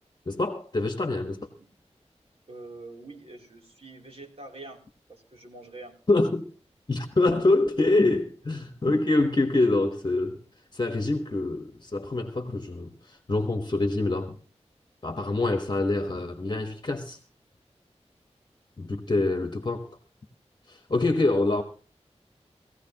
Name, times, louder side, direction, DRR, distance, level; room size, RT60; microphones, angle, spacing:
voice 1, 0.2-1.5 6.1-6.4 6.9-10.4 10.7-14.4 15.0-17.2 18.8-19.9 20.7-21.6, left 2 dB, 40° left, 1.3 m, -25 dB
voice 2, 2.5-4.8 5.1-5.9, right 2 dB, 60° right, 3.4 m, -45 dB
19.5 x 15.0 x 2.9 m
wide cardioid pair, 90°, 12 cm